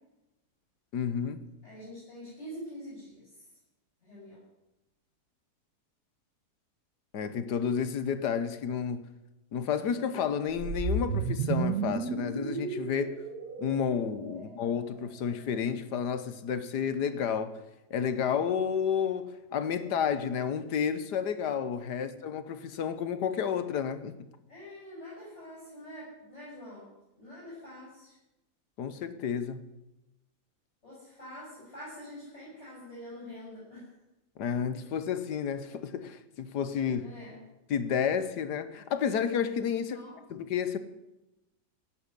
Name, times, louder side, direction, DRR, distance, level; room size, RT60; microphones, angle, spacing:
voice 1, 0.9-1.5 7.1-9.1 9.5-13.2 13.6-17.6 17.9-24.1 28.8-29.7 34.4-37.1 37.7-40.0 40.3-40.8, left 7 dB, 90° left, 1.6 m, -31 dB
voice 2, 1.6-3.3 4.0-4.4 14.3-14.5 21.9-22.3 24.5-26.9 27.2-28.1 30.8-33.9 37.0-37.4 39.9-40.1, equal, 45° left, 7.8 m, -45 dB
sound 1, 10.6-14.8, right 5 dB, 80° right, 2.1 m, -33 dB
17.0 x 7.7 x 9.7 m
omnidirectional pair, 1.7 m